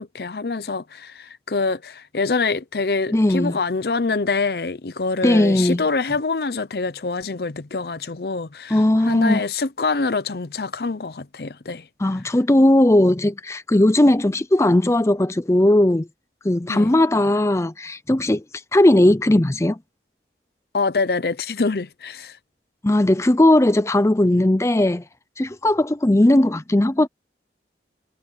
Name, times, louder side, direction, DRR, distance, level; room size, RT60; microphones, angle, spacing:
voice 1, 0.0-11.9 16.7-16.9 20.7-22.4, left 4 dB, 60° left, 0.7 m, -25 dB
voice 2, 3.1-3.6 5.2-5.8 8.7-9.4 12.0-16.1 16.4-18.4 18.7-19.8 22.8-25.0 25.4-27.1, left 1 dB, 15° left, 0.5 m, -17 dB
head